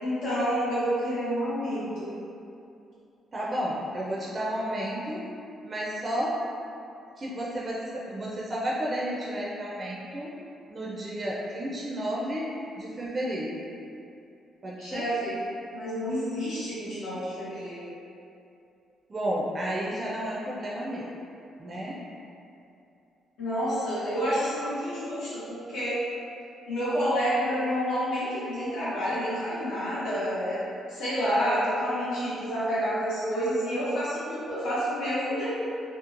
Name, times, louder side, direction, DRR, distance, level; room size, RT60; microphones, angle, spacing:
voice 1, 0.0-2.2 14.8-15.4 15.7-17.9 23.4-26.0 26.7-30.6 30.9-35.6, equal, 90° left, -12 dB, 0.9 m, -29 dB
voice 2, 3.3-5.2 5.6-6.4 7.2-10.3 10.7-12.5 12.8-13.6 14.6-15.1 19.1-21.1 21.6-22.0, equal, 35° right, -5 dB, 0.4 m, -32 dB
2.9 x 2.0 x 2.4 m, 2.6 s
cardioid pair, 90°, 0 cm